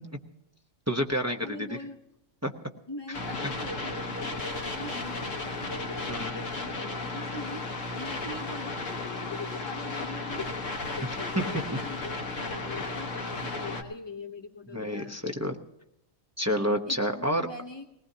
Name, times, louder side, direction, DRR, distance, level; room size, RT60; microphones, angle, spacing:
voice 1, 0.9-1.8 2.4-2.5 6.1-6.4 11.4-11.6 14.7-15.6 16.4-17.4, equal, 15° right, 3 dB, 0.7 m, -29 dB
voice 2, 1.4-2.0 2.9-10.5 10.8-15.2 16.8-17.8, left 2 dB, 30° left, 4 dB, 0.5 m, -42 dB
sound 1, 3.1-13.8, left 3 dB, 65° left, 1.6 m, -34 dB
19.5 x 19.5 x 2.8 m, 0.85 s
omnidirectional pair, 1.4 m